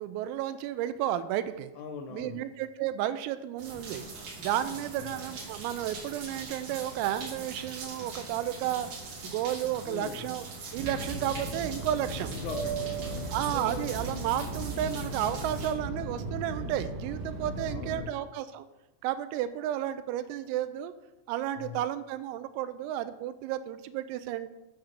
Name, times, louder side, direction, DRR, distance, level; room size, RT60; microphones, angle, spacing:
voice 1, 0.0-1.7 2.1-4.1 4.4-8.9 9.2-10.4 10.7-12.3 13.3-18.6 19.0-20.9 21.3-24.5, right 11 dB, 85° right, 12 dB, 3.3 m, -32 dB
voice 2, 1.8-2.4 5.0-5.1 9.9-10.3 12.3-13.4 17.7-18.3 21.6-21.8, left 7 dB, 80° left, 6 dB, 3.0 m, -42 dB
sound 1, 3.6-15.7, right 3 dB, 45° right, 3.3 m, -42 dB
Fixed-wing aircraft airplane, 10.8-18.0, right 2 dB, 65° right, 2.1 m, -36 dB
10.0 x 5.8 x 6.6 m, 0.97 s
omnidirectional pair, 6.0 m